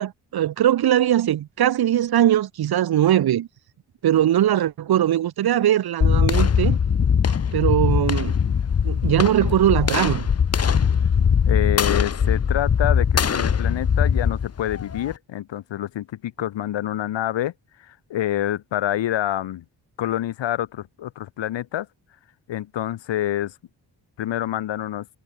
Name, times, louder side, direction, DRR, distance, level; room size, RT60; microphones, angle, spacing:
voice 1, 0.0-3.5 4.0-6.8 7.5-8.3 8.8-10.3, right 11 dB, 60° right, 0.7 m, -20 dB
sound 1, 6.0-15.1, left 7 dB, 35° left, 0.8 m, -21 dB
voice 2, 11.5-17.5 17.8-19.6 20.0-21.9 22.5-23.5 24.2-25.1, left 12 dB, 85° left, 0.9 m, -27 dB
wide cardioid pair, 125°, 43 cm